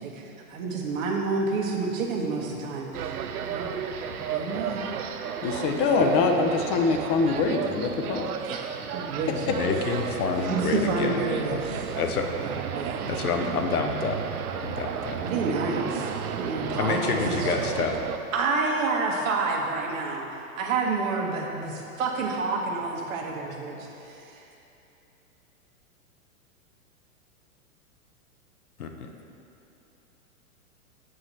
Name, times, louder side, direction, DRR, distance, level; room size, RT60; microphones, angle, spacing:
voice 1, 0.0-3.2 3.4-3.7 4.3-4.8 8.4-9.5 10.4-12.0 12.4-13.0 15.2-16.1 16.4-17.6 18.3-20.3 20.6-23.8 24.0-24.4, right 4 dB, 65° right, 0 dB, 1.3 m, -29 dB
sound 1, 2.9-18.2, right 7 dB, 85° right, 0.6 m, -33 dB
voice 2, 5.4-8.3, left 4 dB, 35° left, 3 dB, 0.6 m, -24 dB
voice 3, 9.5-11.2 11.9-12.2 13.1-14.2 14.6-15.2 16.8-18.0 28.8-29.1, left 5 dB, 85° left, 4 dB, 0.9 m, -28 dB
7.7 x 5.9 x 4.0 m, 2.9 s
hypercardioid pair, 115°, 43 cm